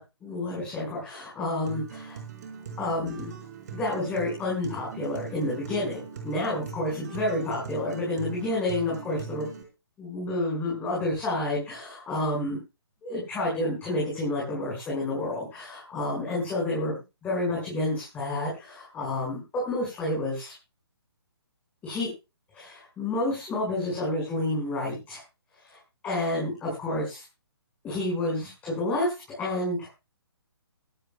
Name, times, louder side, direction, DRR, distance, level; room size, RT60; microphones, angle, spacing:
voice 1, 0.0-2.2 2.8-3.4 3.7-9.5 10.0-12.6 13.0-20.5 21.8-22.1 22.5-25.2 25.6-27.2 27.8-29.9, left 1 dB, 10° left, -3 dB, 5.3 m, -30 dB
Acoustic guitar, 1.6-9.6, right 7 dB, 40° right, 4.1 m, -41 dB
22.0 x 12.5 x 2.2 m, 0.28 s
figure-of-eight pair, 135°, 13 cm